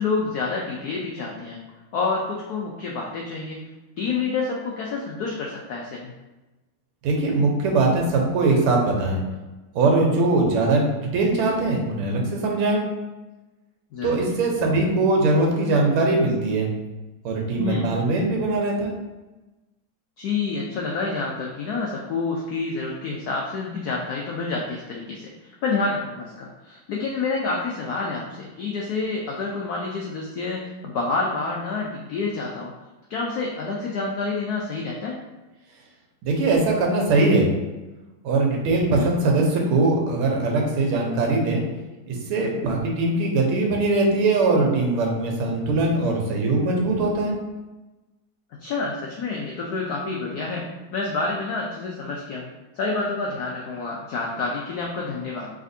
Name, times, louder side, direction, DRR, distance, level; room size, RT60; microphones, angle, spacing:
voice 1, 0.0-1.6 1.9-3.6 4.0-6.1 13.9-14.3 17.6-17.9 20.2-32.7 33.1-35.2 38.9-39.1 48.5-52.5 52.7-55.5, left 4 dB, 90° left, -2 dB, 0.8 m, -28 dB
voice 2, 7.0-9.2 9.8-12.8 14.0-16.7 17.2-19.0 36.2-37.5 38.2-41.6 42.1-47.4, right 2 dB, 90° right, 0 dB, 1.7 m, -21 dB
5.0 x 3.4 x 2.7 m, 1.1 s
omnidirectional pair, 2.3 m